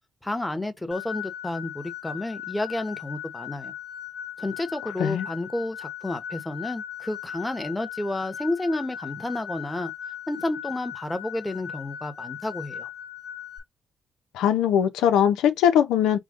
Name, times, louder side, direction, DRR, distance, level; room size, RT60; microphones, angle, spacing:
voice 1, 0.2-3.7 4.4-9.9 10.3-12.9, left 1 dB, 10° left, 1.1 m, -31 dB
sound 1, 0.9-13.6, left 10 dB, 55° left, 1.5 m, -38 dB
voice 2, 14.3-16.2, left 9 dB, 90° left, 0.8 m, -21 dB
5.0 x 2.3 x 3.7 m
cardioid pair, 90°, 0 cm